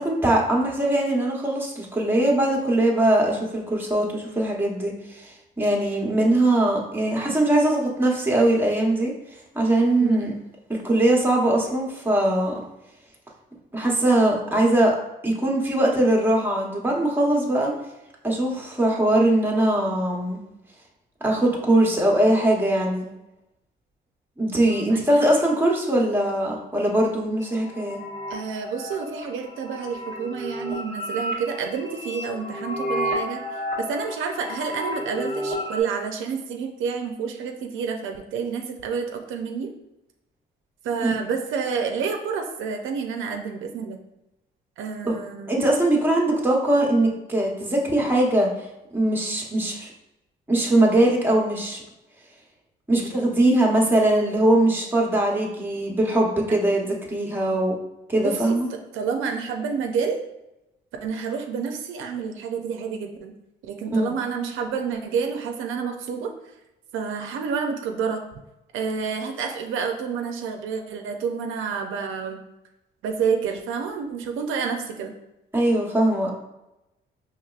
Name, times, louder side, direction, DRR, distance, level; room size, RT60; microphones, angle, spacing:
voice 1, 0.0-9.1 9.5-10.3 10.7-12.5 13.7-14.9 15.2-17.7 18.2-20.4 21.2-23.1 24.4-28.0 41.0-41.1 45.0-45.2 45.5-48.5 48.9-49.9 50.5-51.8 52.9-57.7 58.1-58.7 63.9-64.1 75.5-76.3, right 1 dB, 10° right, -1 dB, 0.9 m, -21 dB
voice 2, 10.0-10.3 24.7-25.2 28.3-33.4 33.8-39.7 40.8-44.0 44.8-45.6 56.5-56.6 58.1-58.5 58.9-60.2 61.0-63.3 63.6-66.3 66.9-68.2 68.7-72.4 73.0-75.1, right 6 dB, 80° right, 3 dB, 0.5 m, -29 dB
sound 1, 27.4-35.8, equal, 55° left, 1.4 m, -32 dB
4.5 x 3.0 x 2.4 m, 0.92 s
cardioid pair, 90°, 20 cm